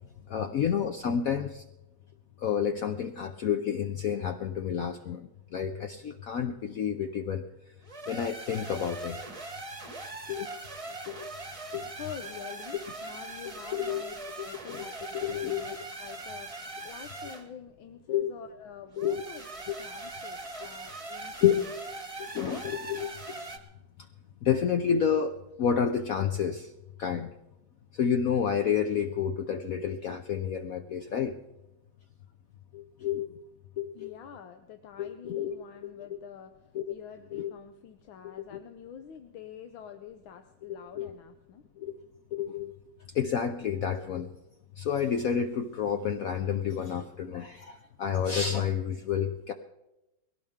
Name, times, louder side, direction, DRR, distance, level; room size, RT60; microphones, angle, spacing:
voice 1, 0.3-1.6 2.4-7.4 8.1-9.2 10.3-10.5 11.1-11.3 11.7-11.9 13.7-14.0 15.1-15.6 18.1-18.3 19.0-19.2 21.4-21.6 22.2-23.1 24.4-25.3 25.6-26.7 27.0-27.3 27.9-31.3 32.7-33.4 33.8-34.1 35.0-35.5 36.7-36.8 37.3-37.5 38.2-38.3 40.9-41.1 41.8-41.9 42.3-42.7 43.1-44.3 44.8-49.5, left 8 dB, 65° left, 6 dB, 0.9 m, -29 dB
sound 1, 7.8-17.5 18.9-23.6, right 2 dB, 20° right, 1.0 m, -41 dB
voice 2, 11.9-21.6 33.9-41.6, left 8 dB, 90° left, 7 dB, 1.6 m, -47 dB
21.0 x 17.5 x 3.6 m, 0.93 s
omnidirectional pair, 2.1 m